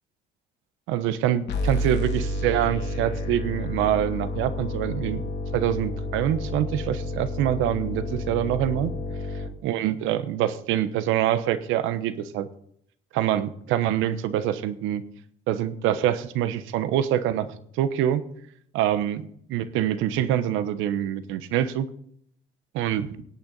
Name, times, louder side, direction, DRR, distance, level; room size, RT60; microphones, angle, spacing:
voice 1, 0.9-5.2 5.5-8.9 9.6-12.5 13.1-15.0 15.5-17.5 17.7-18.2 18.7-19.2 19.5-21.9 22.7-23.2, right 11 dB, 80° right, 13 dB, 1.1 m, -25 dB
sound 1, 1.5-9.5, left 1 dB, 60° left, 2.6 m, -30 dB
17.5 x 8.9 x 4.0 m, 0.67 s
supercardioid pair, 75°, 20 cm